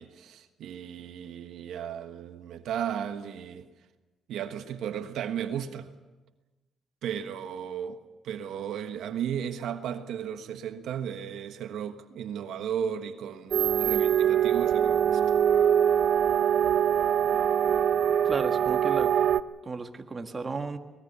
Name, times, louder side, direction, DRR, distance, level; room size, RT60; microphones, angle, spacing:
voice 1, 0.0-3.7 4.3-5.9 7.0-15.4, right 8 dB, 80° right, 1.3 m, -35 dB
sound 1, 13.5-19.4, right 9 dB, 65° right, 0.8 m, -23 dB
voice 2, 18.2-19.1 19.6-20.8, right 4 dB, 30° right, 1.7 m, -34 dB
24.5 x 20.0 x 6.9 m
cardioid pair, 90°, 0 cm